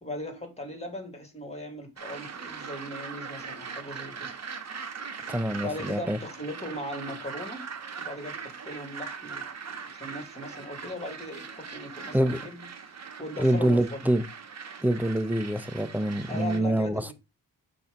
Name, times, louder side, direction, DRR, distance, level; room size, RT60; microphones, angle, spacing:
voice 1, 0.0-4.3 5.6-7.7 8.0-12.6 13.2-14.0 16.3-17.1, left 1 dB, 15° left, 2.2 m, -38 dB
sound 1, 2.0-16.6, right 6 dB, 45° right, 1.0 m, -41 dB
voice 2, 5.3-6.2 12.1-12.4 13.4-14.2 14.8-17.1, right 1 dB, 5° right, 0.6 m, -25 dB
7.0 x 2.8 x 5.1 m
cardioid pair, 65°, 37 cm